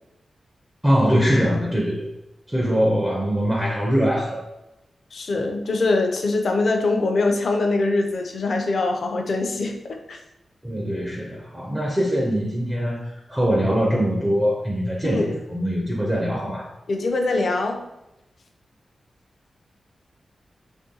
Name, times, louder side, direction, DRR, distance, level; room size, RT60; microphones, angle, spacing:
voice 1, 0.8-2.1 2.5-4.4 10.6-16.7, equal, 10° right, -2 dB, 0.4 m, -22 dB
voice 2, 5.1-10.2 15.0-15.4 16.9-17.8, left 2 dB, 55° left, 4 dB, 0.4 m, -23 dB
3.0 x 2.6 x 3.7 m, 0.93 s
wide cardioid pair, 170°, 0 cm